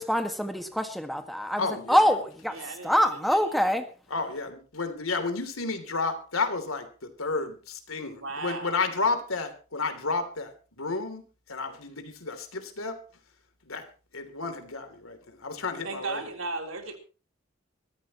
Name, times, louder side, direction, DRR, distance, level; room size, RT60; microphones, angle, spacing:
voice 1, 0.0-2.6 2.8-3.8, equal, ahead, 1.7 m, -25 dB
voice 2, 1.6-2.0 4.1-6.9 7.2-10.5 10.8-11.2 11.5-13.0 13.7-13.8 14.1-16.2, left 4 dB, 85° left, 3.1 m, -31 dB
voice 3, 2.5-3.8 8.1-8.8 15.8-17.0, right 3 dB, 70° right, 3.6 m, -37 dB
23.5 x 14.0 x 3.0 m
head